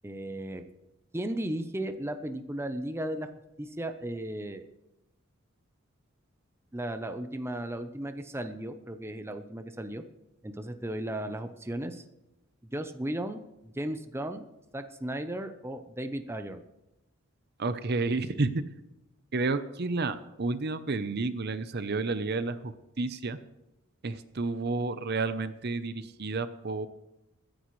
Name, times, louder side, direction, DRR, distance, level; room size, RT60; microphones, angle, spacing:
voice 1, 0.0-0.6 1.1-3.3 3.6-4.6 6.7-10.0 10.4-12.0 12.7-14.5 14.7-16.6, right 1 dB, 10° right, 8 dB, 0.7 m, -35 dB
voice 2, 17.6-18.5 19.3-22.7 23.0-23.4 24.0-26.9, right 3 dB, 50° right, 12 dB, 0.7 m, -30 dB
22.5 x 10.0 x 3.2 m, 0.95 s
head